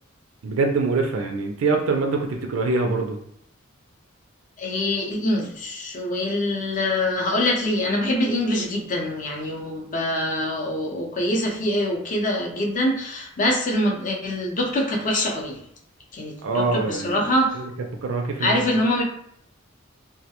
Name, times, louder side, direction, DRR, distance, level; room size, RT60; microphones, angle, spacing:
voice 1, 0.4-3.2 16.4-17.3 17.6-17.7 18.0-18.6, right 3 dB, 75° right, 2 dB, 0.4 m, -24 dB
voice 2, 4.6-15.6 16.1-17.6 18.4-19.0, left 1 dB, 40° left, -1 dB, 0.6 m, -24 dB
2.2 x 2.1 x 2.8 m, 0.68 s
head